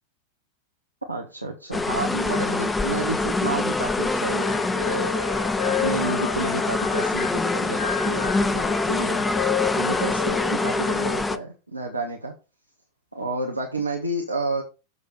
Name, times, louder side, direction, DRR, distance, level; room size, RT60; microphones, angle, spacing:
voice 1, 1.1-5.3 5.6-9.2 9.7-12.3 13.1-14.6, right 2 dB, 85° right, -2 dB, 1.5 m, -30 dB
sound 1, 1.7-11.4, left 3 dB, 10° left, 0.7 m, -25 dB
Wind instrument woodwind instrument, 4.4-7.4 7.7-11.2, left 10 dB, 55° left, 1.5 m, -32 dB
7.5 x 5.0 x 6.7 m, 0.31 s
figure-of-eight pair, 90°, 0 cm